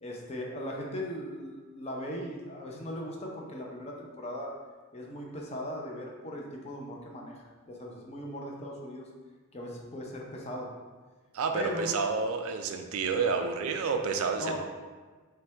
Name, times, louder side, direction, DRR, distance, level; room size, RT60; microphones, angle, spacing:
voice 1, 0.0-4.5 4.9-7.4 7.7-9.1 9.5-10.7 11.5-11.9 14.4-14.6, left 1 dB, 30° left, -1 dB, 0.6 m, -38 dB
voice 2, 11.3-14.6, right 5 dB, 65° right, 5 dB, 0.4 m, -29 dB
5.6 x 2.3 x 3.3 m, 1.4 s
head